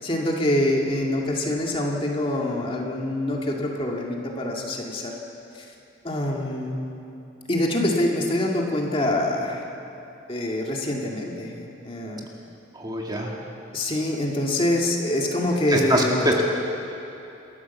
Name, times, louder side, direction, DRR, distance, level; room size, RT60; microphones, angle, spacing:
voice 1, 0.0-5.1 5.5-5.7 6.0-6.8 7.5-9.7 10.3-12.3 13.7-16.3, left 1 dB, 25° left, -1 dB, 2.3 m, -25 dB
voice 2, 12.7-13.4 15.7-16.4, right 1 dB, 20° right, -1 dB, 2.1 m, -23 dB
28.5 x 13.5 x 7.2 m, 2.8 s
head